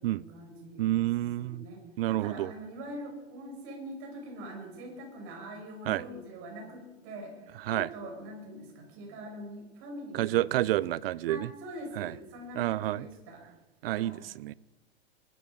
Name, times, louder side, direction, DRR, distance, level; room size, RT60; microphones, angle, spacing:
voice 1, 0.0-1.1 1.4-10.8 11.3-13.4 13.9-14.2, right 1 dB, 45° right, 6.4 m, -43 dB
voice 2, 0.8-1.7 2.0-2.5 5.9-6.0 7.7-7.9 10.1-11.5 12.0-12.1 12.6-13.1 13.8-14.5, right 15 dB, 65° right, 0.6 m, -29 dB
21.5 x 12.5 x 5.3 m
hypercardioid pair, 110°, 31 cm